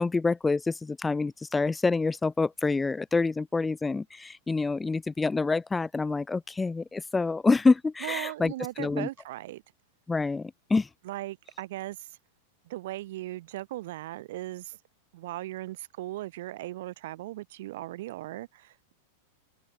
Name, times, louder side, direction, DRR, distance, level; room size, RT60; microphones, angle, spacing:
voice 1, 0.0-8.5 8.8-9.1 10.1-10.9, left 3 dB, 10° left, 0.9 m, -27 dB
voice 2, 8.0-9.6 11.0-12.2 12.6-14.8 15.1-18.9, right 16 dB, 65° right, 4.7 m, -38 dB
hypercardioid pair, 105°, 0 cm